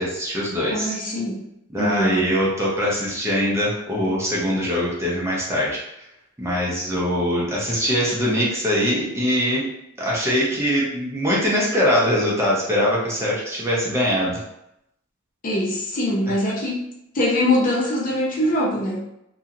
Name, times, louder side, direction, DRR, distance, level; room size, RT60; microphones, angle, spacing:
voice 1, 0.0-0.9 1.7-5.8 6.4-9.7 10.0-14.4, equal, 15° right, -5 dB, 0.7 m, -22 dB
voice 2, 0.7-1.4 1.8-2.3 15.4-16.9 17.1-19.0, left 1 dB, 40° left, -4 dB, 0.7 m, -22 dB
2.8 x 2.7 x 2.5 m, 0.81 s
head